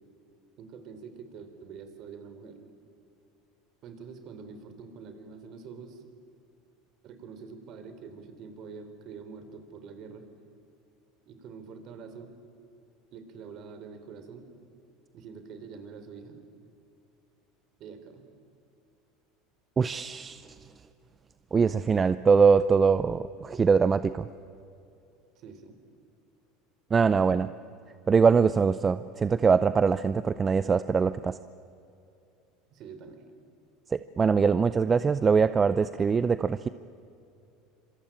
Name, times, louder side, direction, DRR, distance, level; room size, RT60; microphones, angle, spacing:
voice 1, 0.6-2.6 3.8-6.1 7.0-10.3 11.3-12.3 13.1-14.5 15.1-16.4 17.8-18.2 25.4-25.8 32.7-33.2, right 5 dB, 50° right, 8 dB, 3.8 m, -45 dB
voice 2, 19.8-20.5 21.5-24.3 26.9-27.5 28.1-31.4 33.9-36.7, right 5 dB, 25° right, 14 dB, 0.6 m, -23 dB
26.0 x 24.0 x 8.9 m, 2.6 s
supercardioid pair, 115°, 0 cm